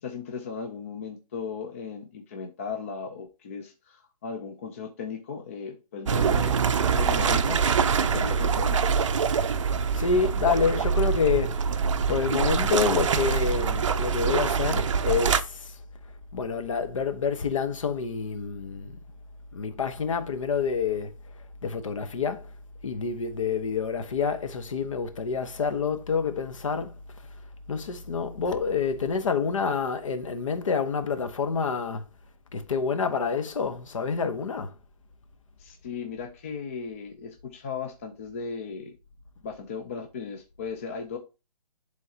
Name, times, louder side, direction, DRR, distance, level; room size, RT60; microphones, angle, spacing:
voice 1, 0.0-7.6 8.0-9.3 35.6-38.9 39.4-41.2, left 5 dB, 20° left, 0.5 m, -37 dB
sound 1, 6.1-15.4, right 6 dB, 50° right, 0.6 m, -24 dB
voice 2, 9.9-15.8 16.3-19.0 19.5-21.1 21.6-22.5 22.8-27.0 27.7-32.0 32.5-34.7, left 5 dB, 55° left, 1.1 m, -28 dB
11.0 x 3.7 x 2.8 m
hypercardioid pair, 165°, 20 cm